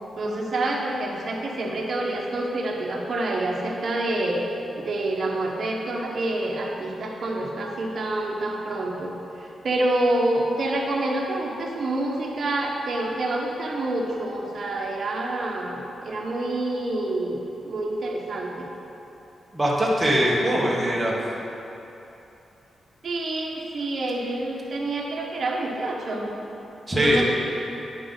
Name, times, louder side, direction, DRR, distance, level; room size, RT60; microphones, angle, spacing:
voice 1, 0.1-18.7 23.0-26.3 26.9-27.2, right 2 dB, 50° right, -2 dB, 1.2 m, -27 dB
voice 2, 19.5-21.2 26.9-27.2, equal, 10° right, -5 dB, 1.3 m, -21 dB
11.5 x 5.2 x 3.9 m, 3.0 s
wide cardioid pair, 155°, 0 cm